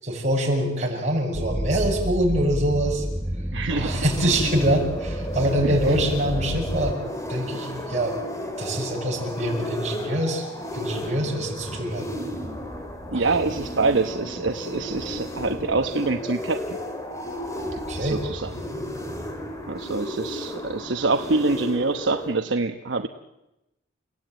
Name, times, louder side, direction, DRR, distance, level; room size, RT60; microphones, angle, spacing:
voice 1, 0.0-3.0 3.8-7.0 7.3-8.2 8.6-10.5 10.7-12.1 13.1-13.4 17.7-18.2, right 1 dB, 40° right, -1 dB, 7.0 m, -25 dB
sound 1, 1.3-6.9, equal, 10° right, 1.0 m, -30 dB
voice 2, 3.5-4.0 5.6-5.8 13.1-16.8 18.0-18.5 19.7-23.1, right 3 dB, 75° right, 6 dB, 1.0 m, -25 dB
sound 2, 3.7-22.3, left 1 dB, 15° left, 2.8 m, -33 dB
30.0 x 16.5 x 9.3 m, 0.95 s
head